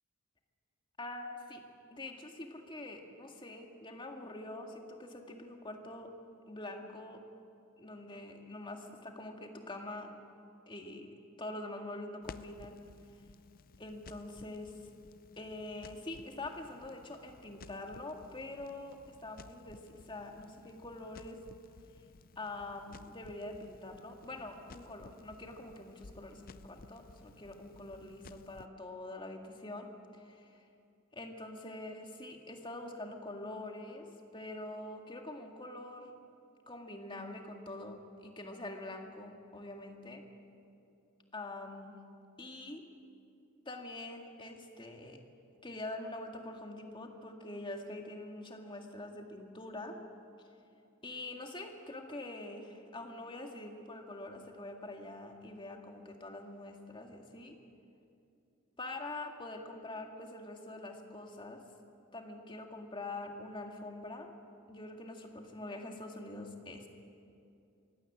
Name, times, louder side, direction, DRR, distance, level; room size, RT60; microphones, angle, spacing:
voice 1, 1.0-1.6 1.9-6.1 6.5-7.2 7.8-10.2 10.7-12.8 13.8-14.7 15.4-21.4 22.4-30.6 31.1-36.1 36.7-40.2 41.3-42.0 42.4-42.8 43.7-45.2 45.6-50.0 51.0-57.6 58.8-61.6 62.1-64.3 64.7-66.9, left 2 dB, 25° left, 3 dB, 2.0 m, -45 dB
Crackle, 12.2-28.7, left 4 dB, 45° left, 0.5 m, -56 dB
23.5 x 16.5 x 8.6 m, 2.6 s
head